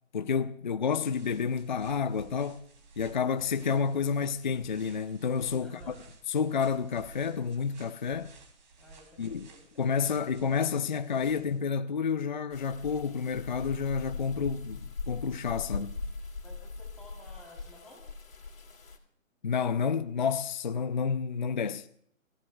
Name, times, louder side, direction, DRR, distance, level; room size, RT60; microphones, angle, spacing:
voice 1, 0.1-2.6 3.0-5.8 6.3-8.3 9.2-9.5 9.8-16.0 19.4-21.9, left 6 dB, 35° left, 0.6 m, -30 dB
sound 1, 1.0-11.6, right 4 dB, 35° right, 3.1 m, -54 dB
voice 2, 5.6-6.0 8.8-9.9 16.4-18.0, left 1 dB, ahead, 3.4 m, -54 dB
sound 2, 12.5-19.0, left 4 dB, 75° left, 3.3 m, -40 dB
29.0 x 16.0 x 2.3 m
hypercardioid pair, 160°, 40 cm